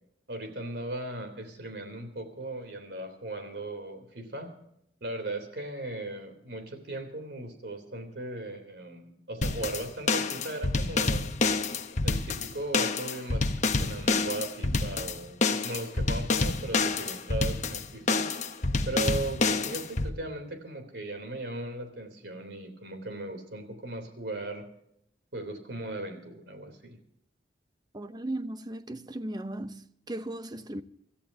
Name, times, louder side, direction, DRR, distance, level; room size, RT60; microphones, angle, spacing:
voice 1, 0.3-4.6 5.0-11.3 12.0-18.2 18.8-24.6 25.3-27.0, right 2 dB, 65° right, 3.4 m, -37 dB
sound 1, 9.4-20.1, left 3 dB, 45° left, 1.1 m, -28 dB
voice 2, 27.9-30.8, right 1 dB, 25° right, 0.8 m, -37 dB
26.5 x 14.0 x 2.8 m
head